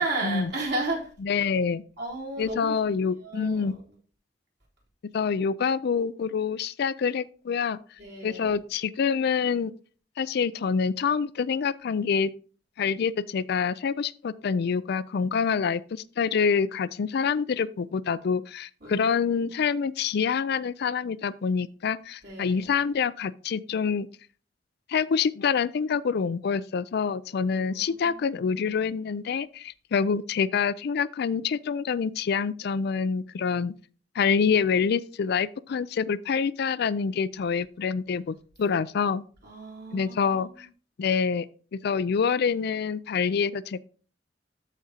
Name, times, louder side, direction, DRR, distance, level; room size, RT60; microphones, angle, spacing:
voice 1, 0.0-1.1 2.0-2.7 3.2-3.8 8.0-8.5 18.8-19.2 22.2-22.7 27.3-28.8 39.4-40.6, right 2 dB, 65° right, 3.6 m, -34 dB
voice 2, 1.2-1.8 2.4-3.7 5.1-7.8 8.2-9.7 10.2-12.3 12.8-24.1 24.9-33.7 34.1-39.2 39.9-40.7 41.0-41.5 41.7-43.8, left 6 dB, 60° left, 0.4 m, -26 dB
14.0 x 5.0 x 2.8 m
head